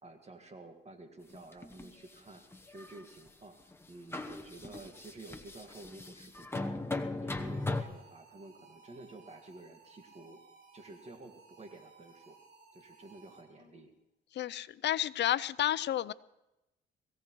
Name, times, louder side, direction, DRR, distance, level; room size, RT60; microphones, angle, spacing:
voice 1, 0.0-3.6 3.9-6.8 7.2-10.4 10.7-12.4 12.7-13.9, right 2 dB, 35° right, 5 dB, 1.8 m, -51 dB
sound 1, 1.3-2.0 2.5-3.3 3.7-3.8 4.1-7.8, left 2 dB, 10° left, 1.0 m, -38 dB
sound 2, 7.5-13.7, right 4 dB, 55° right, 3.5 m, -59 dB
voice 2, 14.3-16.1, left 12 dB, 60° left, 17 dB, 0.6 m, -31 dB
21.5 x 16.0 x 3.1 m, 0.92 s
cardioid pair, 90°, 20 cm